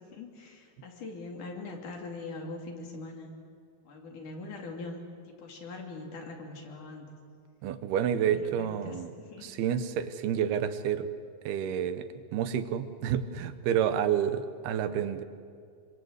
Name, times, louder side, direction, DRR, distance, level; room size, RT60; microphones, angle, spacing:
voice 1, 0.1-3.3 3.8-7.2 8.2-9.5, left 3 dB, 55° left, 2 dB, 4.1 m, -42 dB
voice 2, 7.6-9.1 9.4-11.1 11.5-12.1 12.3-15.2, right 9 dB, 85° right, 11 dB, 3.1 m, -29 dB
26.0 x 24.5 x 8.1 m, 2.2 s
omnidirectional pair, 4.4 m